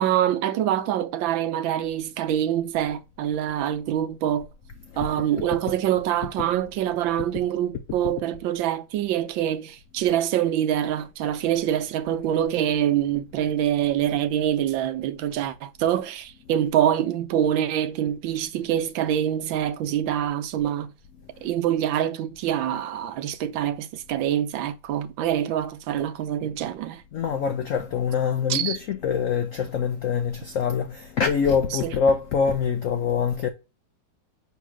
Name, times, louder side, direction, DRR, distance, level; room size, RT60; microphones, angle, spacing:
voice 1, 0.0-4.5 5.0-20.9 21.4-27.0 28.5-28.8 31.7-31.9, right 10 dB, 85° right, 1.4 m, -25 dB
voice 2, 27.1-33.5, left 6 dB, 75° left, 0.7 m, -24 dB
8.1 x 3.1 x 6.1 m
omnidirectional pair, 2.1 m